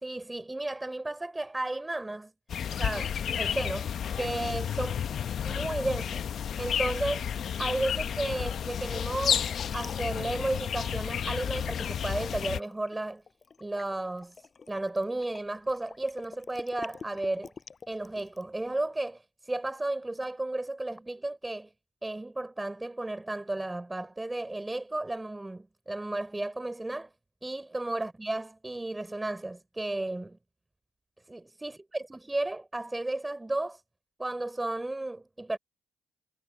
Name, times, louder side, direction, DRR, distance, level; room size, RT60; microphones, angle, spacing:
voice 1, 0.0-2.3 2.7-5.1 5.4-6.3 6.6-7.3 7.6-13.2 13.6-17.5 17.9-21.7 22.0-27.1 27.4-30.4 31.3-33.8 34.2-35.6, right 2 dB, 15° right, 4.5 m, -33 dB
sound 1, 2.5-12.6, left 8 dB, 55° left, 1.1 m, -31 dB
Liquid, 9.1-11.1 11.6-18.6, left 5 dB, 35° left, 7.5 m, -47 dB
supercardioid pair, 70°, 0 cm